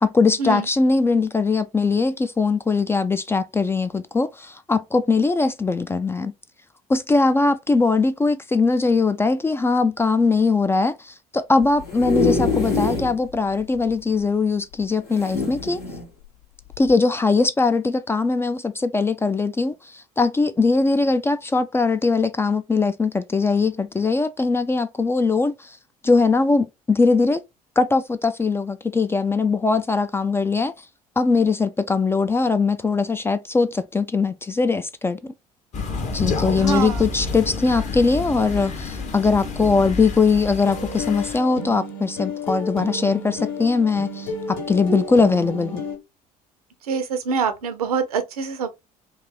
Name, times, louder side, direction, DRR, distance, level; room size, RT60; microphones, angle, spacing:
voice 1, 0.0-6.3 6.9-15.8 16.8-25.8 26.0-27.4 27.8-30.7 31.2-35.3 36.1-45.8, left 4 dB, 15° left, 0.3 m, -21 dB
sound 1, 11.6-13.1 13.6-13.7 13.9-14.0 15.1-16.0 16.7-16.9, left 4 dB, 75° left, 1.4 m, -24 dB
Crow, 35.7-41.4, left 4 dB, 40° left, 0.9 m, -29 dB
voice 2, 36.5-37.0 46.9-48.7, right 5 dB, 75° right, 0.6 m, -25 dB
sound 2, 40.6-46.0, left 1 dB, 60° left, 1.5 m, -31 dB
3.1 x 2.5 x 3.7 m
figure-of-eight pair, 55°, 19 cm